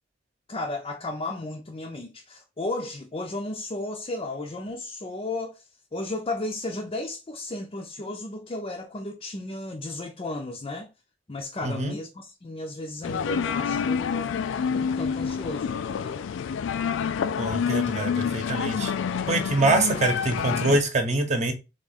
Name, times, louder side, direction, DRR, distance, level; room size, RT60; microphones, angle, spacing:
voice 1, 0.5-5.6 5.9-10.9 11.3-14.4 14.8-16.3, left 2 dB, 30° left, 0.5 m, -34 dB
voice 2, 11.6-11.9 17.4-18.9 19.3-21.5, right 2 dB, 40° right, 0.9 m, -24 dB
sound 1, 13.0-20.8, left 7 dB, 90° left, 0.3 m, -28 dB
3.6 x 3.3 x 4.0 m
head